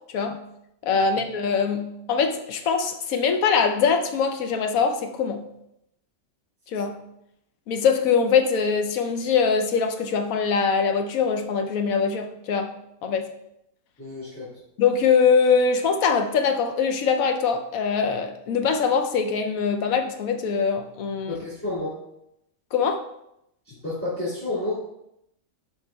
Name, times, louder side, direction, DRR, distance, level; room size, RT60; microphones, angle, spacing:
voice 1, 0.9-5.4 6.7-7.0 7.7-12.7 13.0-13.3 14.8-21.3 22.7-23.0, left 5 dB, 85° left, 6 dB, 1.1 m, -22 dB
voice 2, 14.0-14.5 21.3-22.0 23.6-24.8, left 2 dB, 10° left, -10 dB, 2.6 m, -30 dB
11.0 x 4.8 x 2.3 m, 0.80 s
omnidirectional pair, 1.4 m